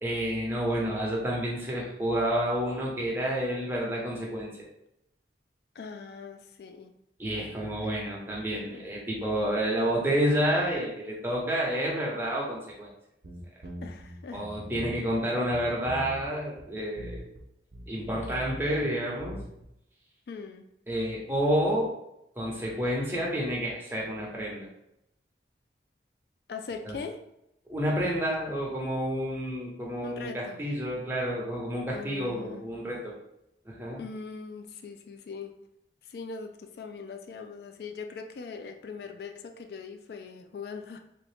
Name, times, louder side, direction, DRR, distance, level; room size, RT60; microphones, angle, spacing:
voice 1, 0.0-4.5 7.2-12.9 14.3-17.2 17.9-19.4 20.9-21.9 22.4-24.7 26.8-26.9 27.7-33.1 33.7-34.0, equal, 15° right, -4 dB, 0.9 m, -29 dB
voice 2, 5.8-6.9 7.8-7.9 8.7-8.9 13.8-14.5 20.3-20.7 26.5-27.2 30.0-30.6 31.9-32.6 34.0-35.6 36.1-41.0, left 5 dB, 60° left, 6 dB, 0.3 m, -41 dB
sound 1, 13.2-15.2 15.5-16.3 16.6-16.7 17.0-17.4 17.7-19.7, right 1 dB, 60° right, 0.7 m, -41 dB
3.7 x 2.8 x 3.4 m, 0.83 s
head